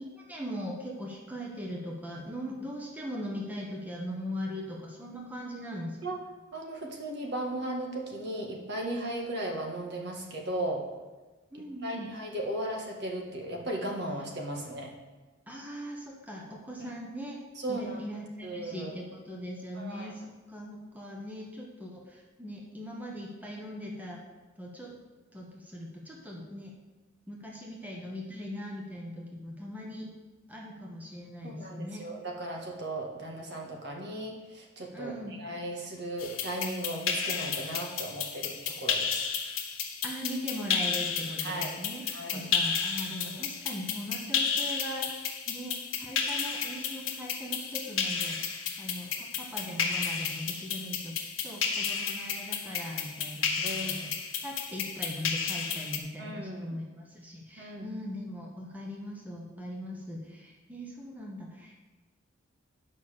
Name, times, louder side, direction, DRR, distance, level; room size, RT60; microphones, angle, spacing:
voice 1, 0.1-6.0 11.5-12.1 15.5-17.4 17.7-24.2 24.6-25.0 25.3-26.7 27.3-30.1 30.5-32.0 34.9-35.4 40.0-42.0 42.3-45.1 45.5-48.4 48.8-51.1 51.4-61.8, equal, 10° right, -2 dB, 1.2 m, -40 dB
voice 2, 6.5-10.8 11.8-14.9 16.8-16.9 17.6-18.0 18.4-18.9 19.8-20.2 31.4-39.3 41.4-41.7 42.1-42.4 43.2-43.4 53.6-54.1 56.2-56.8 57.6-57.9, right 1 dB, 55° right, 0 dB, 1.7 m, -36 dB
sound 1, 36.2-56.0, left 6 dB, 85° left, 1.3 m, -32 dB
9.2 x 5.6 x 6.7 m, 1.2 s
head